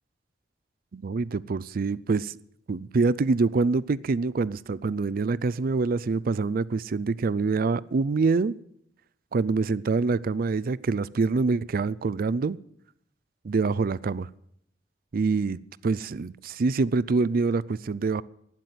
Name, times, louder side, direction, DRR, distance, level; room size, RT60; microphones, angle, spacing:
voice 1, 0.9-2.4 2.7-8.5 9.3-12.6 13.4-14.3 15.1-18.2, right 4 dB, 55° right, 20 dB, 0.4 m, -25 dB
12.0 x 9.7 x 9.2 m, 0.75 s
head